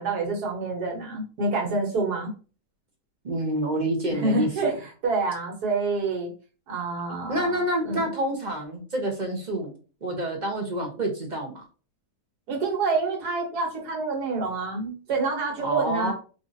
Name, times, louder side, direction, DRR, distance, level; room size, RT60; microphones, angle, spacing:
voice 1, 0.0-2.3 4.1-6.3 6.7-8.0 12.5-16.1, right 3 dB, 80° right, 1 dB, 1.6 m, -27 dB
voice 2, 3.2-4.5 7.3-9.7 10.0-11.6 15.6-16.1, right 1 dB, 45° right, 2 dB, 0.6 m, -28 dB
4.9 x 2.4 x 2.6 m, 0.36 s
omnidirectional pair, 1.7 m